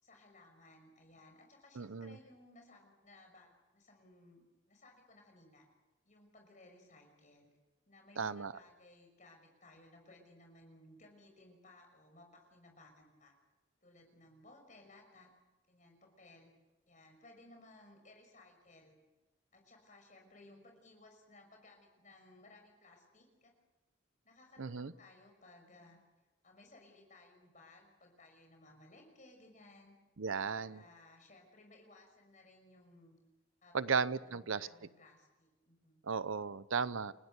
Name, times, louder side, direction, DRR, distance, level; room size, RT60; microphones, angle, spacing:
voice 1, 0.0-5.6 6.0-7.5 7.9-13.3 13.8-15.3 15.7-16.5 16.9-19.0 19.5-23.5 24.2-26.0 26.4-29.9 30.5-33.2 33.6-36.0, left 2 dB, 35° left, 3 dB, 5.9 m, -60 dB
voice 2, 1.8-2.2 8.2-8.5 24.6-24.9 30.2-30.8 33.7-34.7 36.0-37.1, right 5 dB, 75° right, 16 dB, 0.7 m, -35 dB
29.5 x 16.5 x 8.2 m, 1.1 s
head